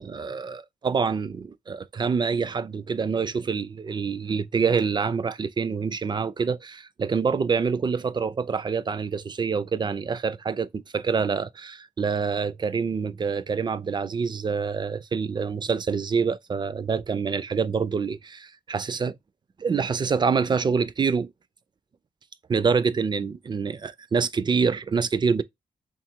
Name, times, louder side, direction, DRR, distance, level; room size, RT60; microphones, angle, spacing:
voice 1, 0.0-19.2 19.6-21.3 22.5-25.4, right 5 dB, 30° right, 0.3 m, -26 dB
3.4 x 2.4 x 4.3 m
wide cardioid pair, 125°, 15 cm